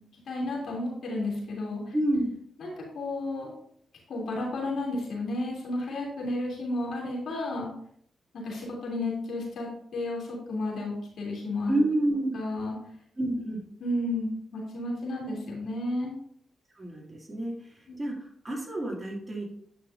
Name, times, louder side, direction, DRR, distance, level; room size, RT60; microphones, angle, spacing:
voice 1, 0.2-1.9 2.6-3.5 4.1-7.7 8.3-11.7 12.3-12.8 13.8-16.1 17.9-18.0, left 2 dB, 70° left, -3 dB, 3.2 m, -32 dB
voice 2, 1.9-2.3 11.7-12.4 13.2-13.6 16.8-19.4, right 1 dB, 25° right, -1 dB, 2.6 m, -29 dB
9.9 x 5.8 x 2.7 m, 0.65 s
supercardioid pair, 55°, 0 cm